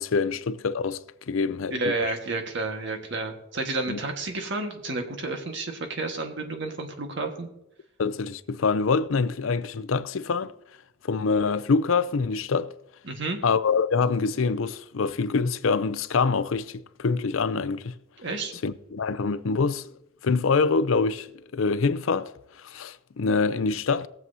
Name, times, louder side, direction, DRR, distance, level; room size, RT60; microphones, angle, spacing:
voice 1, 0.0-1.7 3.9-4.0 8.0-10.5 11.0-12.7 13.4-17.9 18.6-19.9 20.2-21.3 21.5-24.1, left 4 dB, 75° left, 0.5 m, -25 dB
voice 2, 1.7-7.5 13.0-13.4 18.2-18.5, right 3 dB, 60° right, 1.5 m, -31 dB
21.0 x 7.7 x 2.7 m
head